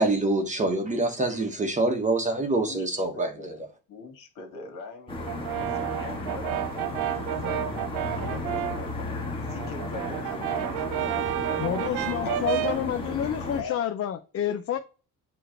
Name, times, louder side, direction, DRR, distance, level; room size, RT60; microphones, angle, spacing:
voice 1, 0.0-3.3, right 2 dB, 20° right, 1.1 m, -25 dB
voice 2, 3.1-7.7 8.1-11.7 12.2-12.7 13.6-13.8, left 4 dB, 55° left, 2.8 m, -42 dB
sound 1, 5.1-13.6, left 2 dB, 15° left, 1.6 m, -34 dB
Brass instrument, 5.3-8.9 9.3-12.9, right 13 dB, 85° right, 0.7 m, -31 dB
voice 3, 11.6-14.8, left 10 dB, 40° left, 0.6 m, -29 dB
7.8 x 3.1 x 5.0 m
cardioid pair, 155°, 37 cm